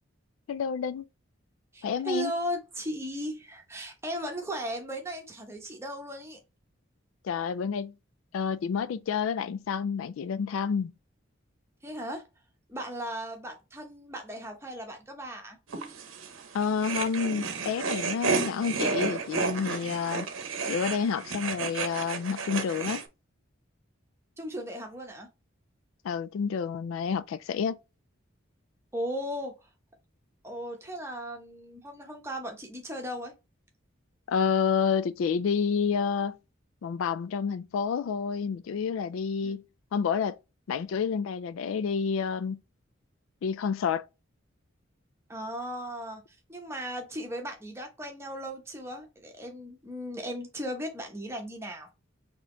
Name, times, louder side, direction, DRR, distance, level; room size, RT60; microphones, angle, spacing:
voice 1, 0.5-1.1 1.8-2.3 7.2-7.9 8.3-10.9 16.5-20.3 20.7-23.0 26.0-27.8 34.3-36.4 36.8-39.6 39.9-40.4 40.7-42.6 43.4-44.1, left 6 dB, 80° left, 0.3 m, -29 dB
voice 2, 1.7-6.4 11.8-12.2 12.7-15.6 24.4-25.3 28.9-29.5 30.4-33.3 39.4-39.5 45.3-46.2 46.5-51.9, equal, 15° right, 0.9 m, -36 dB
sound 1, 15.7-23.0, right 4 dB, 80° right, 0.8 m, -32 dB
4.1 x 2.9 x 3.7 m
head